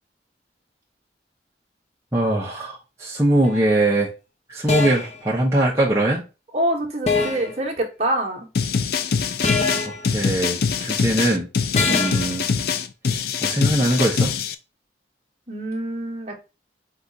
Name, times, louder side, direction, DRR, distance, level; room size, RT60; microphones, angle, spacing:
voice 1, 2.1-4.1 4.5-6.2 9.9-11.5 11.8-12.5 13.1-14.3, right 1 dB, 15° right, -6 dB, 0.7 m, -22 dB
sound 1, 3.4-3.7 4.7-5.2 7.1-7.6 9.4-10.1 11.8-12.4, left 4 dB, 35° left, 0.8 m, -23 dB
voice 2, 6.5-8.5 11.8-12.1 15.5-16.4, right 1 dB, 35° right, 0 dB, 1.1 m, -26 dB
sound 2, 8.5-14.5, left 6 dB, 55° left, 0.4 m, -23 dB
4.8 x 2.4 x 3.8 m, 0.30 s
head